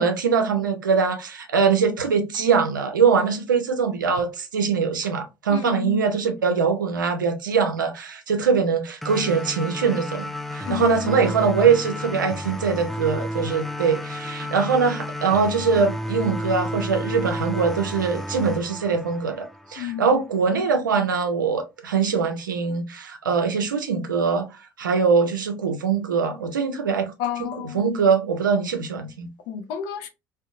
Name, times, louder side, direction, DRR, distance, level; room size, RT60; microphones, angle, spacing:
voice 1, 0.0-27.1 27.4-27.5 27.7-29.3, right 5 dB, 80° right, 0.4 m, -22 dB
voice 2, 5.5-6.1 10.6-11.2 19.8-20.0 27.2-28.0 29.5-30.1, left 10 dB, 60° left, 0.5 m, -30 dB
sound 1, 9.0-20.0, left 1 dB, ahead, 0.3 m, -32 dB
2.6 x 2.1 x 2.5 m
figure-of-eight pair, 60°, 10 cm